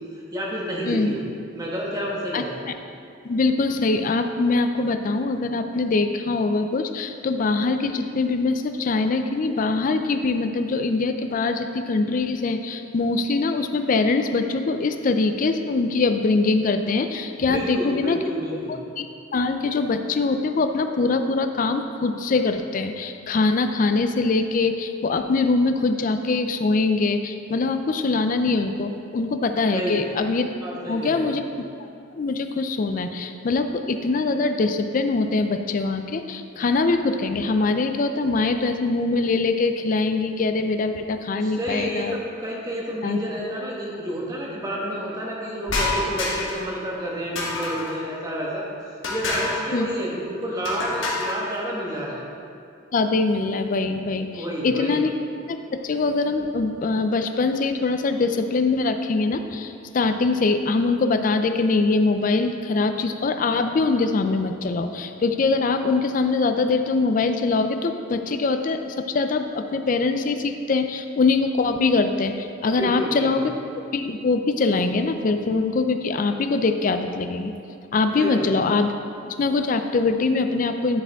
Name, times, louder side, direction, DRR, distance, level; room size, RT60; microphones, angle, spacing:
voice 1, 0.3-1.2 1.5-2.5 17.4-18.8 29.7-30.0 30.6-31.3 41.4-48.6 49.1-52.2 54.3-55.0 72.7-73.4 78.2-78.5, equal, 20° right, -4 dB, 1.2 m, -30 dB
voice 2, 3.2-18.2 18.7-19.1 19.3-30.5 30.9-31.4 32.2-42.2 43.0-43.2 49.7-49.9 52.9-55.1 55.5-73.5 73.9-77.5 77.9-78.9 79.3-81.0, left 3 dB, 40° left, 7 dB, 0.4 m, -23 dB
sound 1, 45.7-46.6 47.4-48.0 49.0-49.6 50.6-51.4, left 2 dB, 70° left, 1.4 m, -27 dB
10.5 x 4.8 x 3.5 m, 2.5 s
head